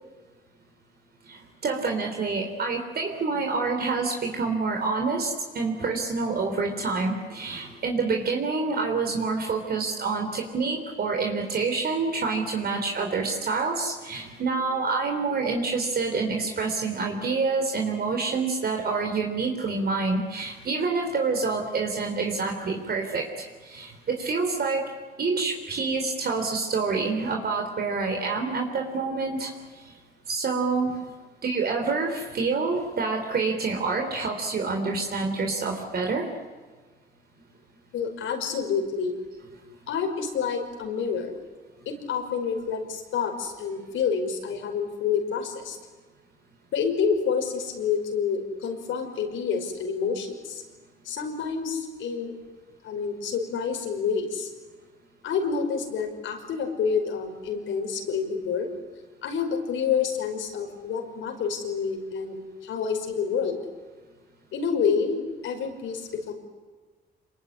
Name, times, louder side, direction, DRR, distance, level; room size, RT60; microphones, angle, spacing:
voice 1, 1.3-23.2 23.6-24.9 25.2-29.5 30.3-31.1 31.4-36.3, right 4 dB, 50° right, 2 dB, 3.9 m, -27 dB
voice 2, 37.9-39.2 39.9-41.3 41.9-45.8 46.7-50.6 51.0-52.4 52.8-54.5 55.2-58.7 59.2-63.6 64.5-66.3, left 6 dB, 80° left, 4 dB, 5.5 m, -28 dB
27.0 x 22.5 x 9.8 m, 1.4 s
cardioid pair, 90°, 20 cm